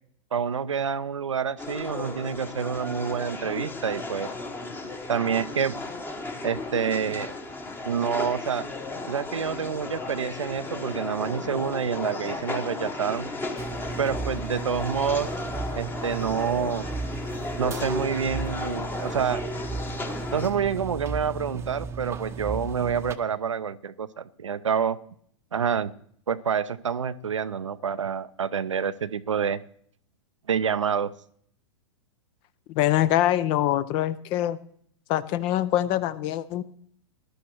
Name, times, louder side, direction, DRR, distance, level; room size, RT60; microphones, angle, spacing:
voice 1, 0.3-4.3 5.1-5.8 6.4-7.3 7.8-8.7 9.1-13.3 14.0-15.3 15.7-16.9 17.6-19.4 20.3-25.0 25.5-25.9 26.3-29.6 30.5-31.1, right 7 dB, 75° right, 15 dB, 0.5 m, -27 dB
sound 1, 1.6-20.5, left 2 dB, 15° left, 1.1 m, -35 dB
sound 2, 13.6-23.2, right 4 dB, 15° right, 0.7 m, -35 dB
voice 2, 32.7-34.6 35.1-36.6, left 13 dB, 35° left, 19 dB, 0.5 m, -24 dB
19.5 x 11.5 x 3.0 m, 0.64 s
figure-of-eight pair, 100°, 16 cm